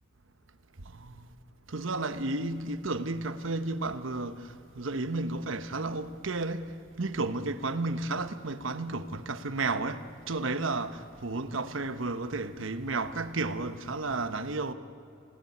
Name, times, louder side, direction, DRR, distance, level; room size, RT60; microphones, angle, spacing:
voice 1, 0.8-1.3 1.7-6.7 7.0-14.7, right 3 dB, 75° right, 1.1 m, -32 dB
28.5 x 17.0 x 9.5 m
head